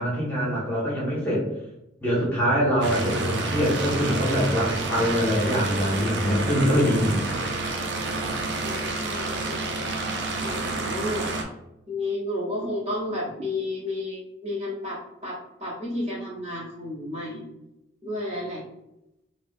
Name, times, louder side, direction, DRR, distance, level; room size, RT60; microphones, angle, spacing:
voice 1, 0.0-1.4 2.0-7.2, equal, 10° left, -7 dB, 0.8 m, -24 dB
sound 1, 2.8-11.4, right 2 dB, 65° right, 0.4 m, -29 dB
voice 2, 8.6-9.9 10.4-11.3 11.9-17.4 18.0-18.6, left 1 dB, 35° right, -6 dB, 0.9 m, -32 dB
3.5 x 2.1 x 2.6 m, 0.87 s
head